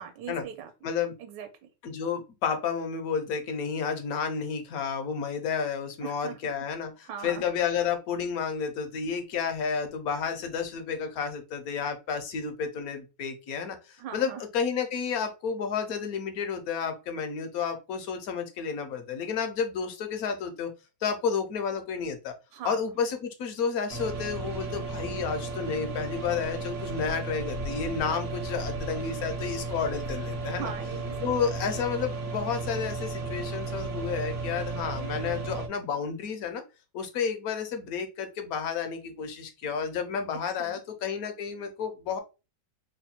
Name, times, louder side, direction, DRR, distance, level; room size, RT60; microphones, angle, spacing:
voice 1, 0.0-0.7 1.2-1.7 6.0-6.4 7.0-7.5 14.0-14.4 22.5-22.8 30.5-31.5 40.6-40.8, right 8 dB, 80° right, 7 dB, 1.3 m, -40 dB
voice 2, 0.8-1.1 1.8-6.9 7.2-20.7 21.0-22.3 22.6-30.7 31.2-36.6 36.9-42.2, left 6 dB, 65° left, 6 dB, 1.0 m, -31 dB
sound 1, 23.9-35.7, right 3 dB, 60° right, 0.8 m, -34 dB
3.2 x 2.2 x 4.2 m, 0.29 s
omnidirectional pair, 1.9 m